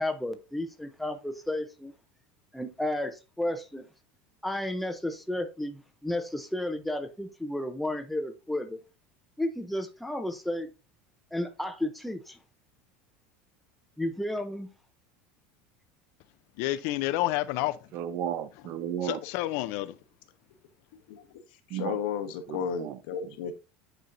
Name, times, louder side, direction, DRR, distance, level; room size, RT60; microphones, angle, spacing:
voice 1, 0.0-1.9 2.5-3.9 4.4-8.8 9.4-10.7 11.3-12.4 14.0-14.7, left 1 dB, ahead, 0.6 m, -32 dB
voice 2, 16.6-17.8 19.0-20.0, left 16 dB, 60° left, 0.4 m, -29 dB
voice 3, 17.9-19.2 21.7-22.0 22.8-23.0, right 10 dB, 45° right, 0.6 m, -33 dB
voice 4, 21.1-23.5, left 7 dB, 85° left, 1.1 m, -34 dB
9.4 x 4.4 x 2.5 m
cardioid pair, 160°, 5 cm